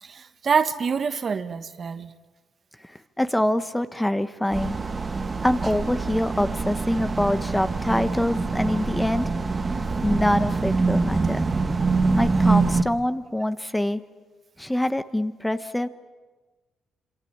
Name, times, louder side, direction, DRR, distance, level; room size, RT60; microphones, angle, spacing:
voice 1, 0.0-2.1, right 6 dB, 45° right, 10 dB, 1.4 m, -26 dB
voice 2, 2.8-4.8 5.4-9.3 10.0-11.4 12.1-14.0 14.6-15.9, left 1 dB, 5° left, 11 dB, 1.1 m, -25 dB
sound 1, 4.5-12.8, right 4 dB, 30° right, 1.9 m, -25 dB
27.0 x 25.0 x 8.7 m, 1.3 s
cardioid pair, 90°, 0 cm